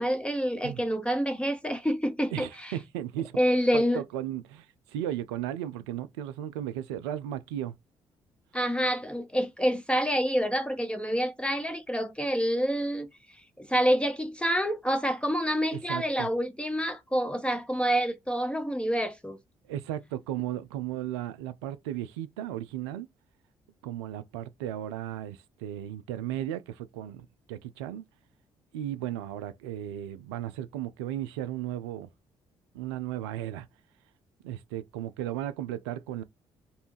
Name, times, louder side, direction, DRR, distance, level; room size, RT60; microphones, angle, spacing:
voice 1, 0.0-2.7 3.4-4.0 8.5-13.1 13.6-19.4, equal, 5° left, 0.6 m, -27 dB
voice 2, 2.3-3.3 3.7-7.7 15.7-16.3 19.7-23.1 23.8-28.0 28.7-32.1 32.7-33.7 34.4-36.2, right 12 dB, 75° right, 0.4 m, -35 dB
3.1 x 2.6 x 3.2 m
figure-of-eight pair, 45°, 14 cm